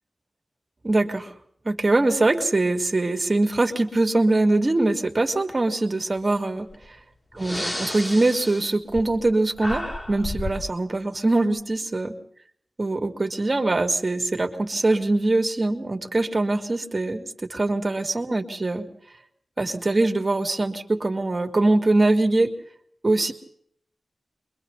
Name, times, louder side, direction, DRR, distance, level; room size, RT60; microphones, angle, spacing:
voice 1, 0.8-1.3 1.6-6.7 7.4-12.1 12.8-18.8 19.6-22.5 23.0-23.3, right 2 dB, 45° right, 5 dB, 2.8 m, -23 dB
Breathing, 6.7-6.8 7.3-9.3 9.6-10.7, left 1 dB, 30° left, 3.8 m, -32 dB
29.0 x 23.5 x 4.2 m, 0.64 s
cardioid pair, 50°, 0 cm